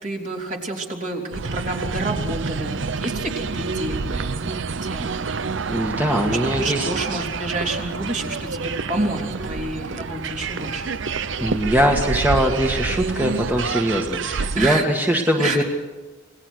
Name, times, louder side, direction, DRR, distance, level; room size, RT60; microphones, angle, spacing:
voice 1, 0.0-5.1 6.3-10.9 14.6-14.8 15.4-15.6, right 2 dB, 40° right, 0 dB, 3.6 m, -29 dB
sound 1, 1.3-14.7, right 4 dB, 75° right, 0.7 m, -28 dB
voice 2, 5.7-6.9 11.4-15.6, equal, 10° right, 1 dB, 1.6 m, -21 dB
28.5 x 19.0 x 6.4 m, 1.2 s
head